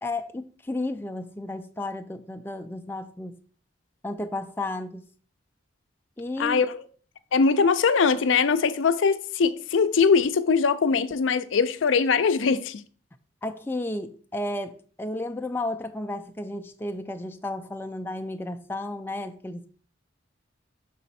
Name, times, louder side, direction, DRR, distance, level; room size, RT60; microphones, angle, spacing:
voice 1, 0.0-3.4 4.0-5.0 6.2-6.6 13.4-19.7, left 2 dB, 10° left, 0.3 m, -33 dB
voice 2, 6.4-6.8 7.3-12.8, left 5 dB, 80° left, 0.4 m, -22 dB
6.2 x 4.0 x 4.2 m
head